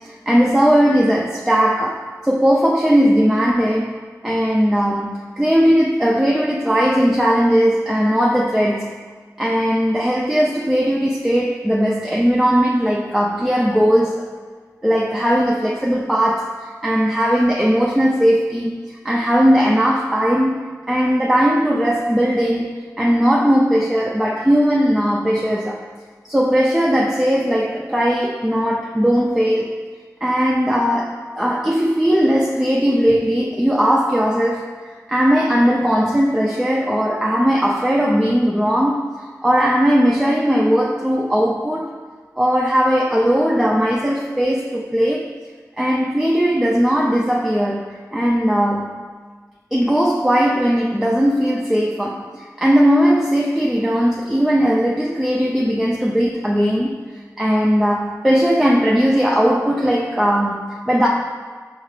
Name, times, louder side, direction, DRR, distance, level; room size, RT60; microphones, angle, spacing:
voice 1, 0.0-4.0 4.2-8.9 9.4-14.3 14.8-20.5 20.9-25.8 26.2-29.8 30.2-34.7 35.1-39.0 39.4-41.9 42.4-45.3 45.8-49.0 49.7-57.0 57.4-61.1, equal, 5° right, -2 dB, 0.4 m, -18 dB
5.5 x 2.4 x 3.2 m, 1.5 s
wide cardioid pair, 45°, 6 cm